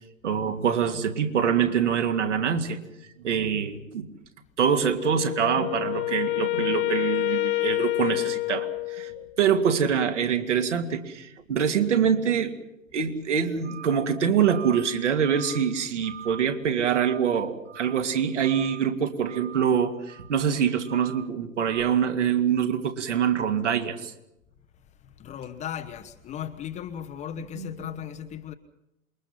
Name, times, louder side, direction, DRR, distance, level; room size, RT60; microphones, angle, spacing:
voice 1, 0.2-2.8 3.2-4.1 4.6-12.5 12.9-24.1 27.4-27.9, right 7 dB, 60° right, 2.7 m, -25 dB
Wind instrument woodwind instrument, 5.0-9.3, left 19 dB, 45° left, 0.7 m, -28 dB
voice 2, 25.0-28.5, left 9 dB, 15° left, 1.0 m, -37 dB
27.5 x 22.5 x 5.9 m
figure-of-eight pair, 110°, 40 cm